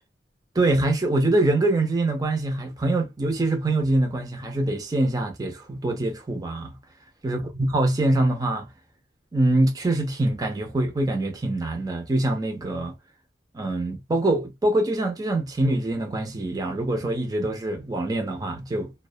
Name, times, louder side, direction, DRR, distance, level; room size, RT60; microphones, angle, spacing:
voice 1, 0.5-6.7 7.2-8.7 9.3-12.9 13.5-18.9, right 2 dB, 20° right, 0.5 m, -24 dB
2.3 x 2.1 x 2.5 m
head